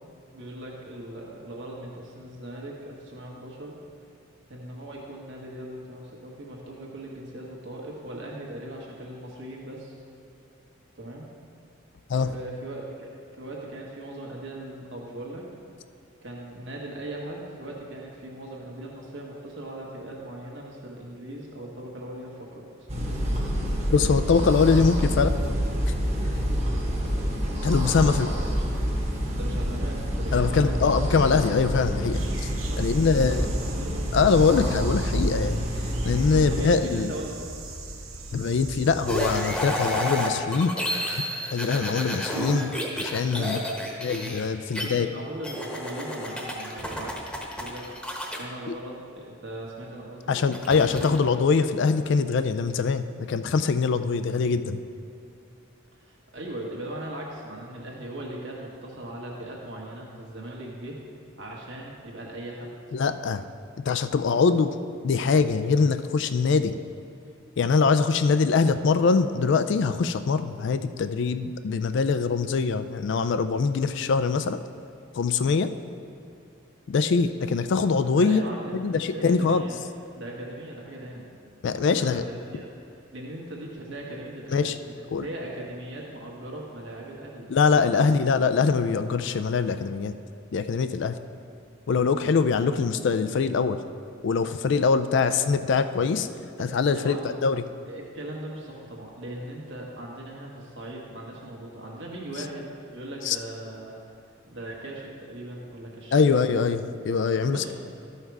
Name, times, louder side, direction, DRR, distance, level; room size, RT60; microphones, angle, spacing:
voice 1, 0.3-3.8 4.5-9.9 10.9-11.3 12.2-15.4 16.2-22.9 24.2-24.7 27.8-28.7 29.4-30.9 32.7-34.4 36.3-37.5 43.3-43.9 44.6-47.9 48.4-50.4 55.9-61.0 61.4-62.7 78.2-79.8 80.2-81.2 81.8-82.7 83.1-87.5 87.9-88.1 96.6-97.4 97.9-104.0 104.5-106.3 107.4-107.7, right 1 dB, 60° right, -2 dB, 1.5 m, -39 dB
sound 1, 22.9-36.7, equal, 30° right, 1.2 m, -27 dB
voice 2, 23.9-25.3 27.6-28.3 30.3-32.5 32.8-33.5 34.1-35.6 36.0-37.1 38.3-40.7 41.2-41.3 41.5-42.7 43.0-43.6 44.0-45.1 48.7-48.8 50.3-54.8 62.9-63.4 63.9-64.7 65.0-66.7 67.6-74.6 75.2-75.7 76.9-78.4 78.7-79.6 81.6-82.2 84.5-84.7 85.1-85.3 87.5-90.2 90.5-91.1 91.9-93.8 94.2-96.3 96.6-97.2 97.4-97.6 103.2-103.4 106.1-107.7, left 5 dB, 60° left, 11 dB, 0.4 m, -23 dB
sound 2, 32.1-39.5, right 1 dB, 80° right, 1.0 m, -38 dB
sound 3, 39.1-44.8 45.4-48.4 50.5-51.2, equal, 5° left, 1.0 m, -30 dB
13.0 x 5.7 x 4.7 m, 2.6 s
head